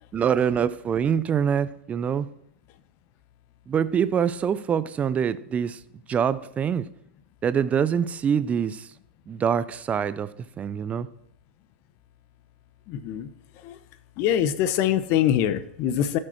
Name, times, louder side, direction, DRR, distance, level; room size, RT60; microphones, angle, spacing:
voice 1, 0.1-2.3 3.7-5.8 6.1-6.9 7.4-8.8 9.3-10.3 10.6-11.1, right 7 dB, 25° right, 0.6 m, -24 dB
voice 2, 12.9-13.3 13.6-13.8 14.2-16.2, left 10 dB, 45° left, 0.9 m, -24 dB
14.0 x 6.6 x 4.5 m
hypercardioid pair, 100°, 6 cm